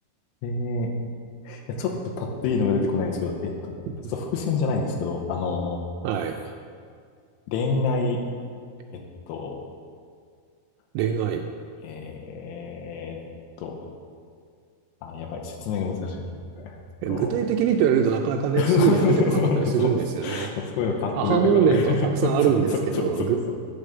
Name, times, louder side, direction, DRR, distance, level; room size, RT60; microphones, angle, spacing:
voice 1, 0.4-0.9 1.4-3.8 4.1-5.8 7.5-8.2 8.9-9.0 9.3-9.6 11.8-13.2 13.6-13.7 15.0-16.2 16.6-16.8 17.1-17.3 18.6-19.9 20.2-23.5, left 4 dB, 85° left, 0 dB, 3.0 m, -26 dB
voice 2, 6.0-6.3 10.9-11.4 17.0-20.5 21.1-23.4, right 8 dB, 90° right, 2 dB, 2.7 m, -23 dB
9.0 x 4.9 x 6.8 m, 2.1 s
omnidirectional pair, 4.8 m